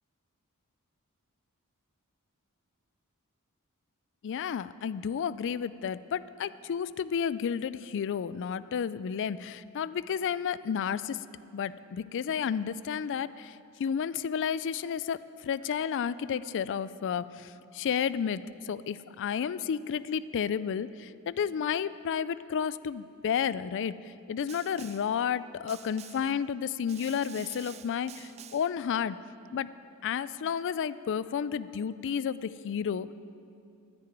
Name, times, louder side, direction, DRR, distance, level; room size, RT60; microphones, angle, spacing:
voice 1, 4.2-11.2 11.5-29.2 29.5-29.7 30.0-33.1, left 7 dB, 55° left, 16 dB, 0.3 m, -32 dB
Snare drum, 24.5-25.2 25.7-26.4 26.9-28.8, right 10 dB, 30° right, 0.3 m, -49 dB
10.5 x 9.8 x 9.2 m, 2.6 s
head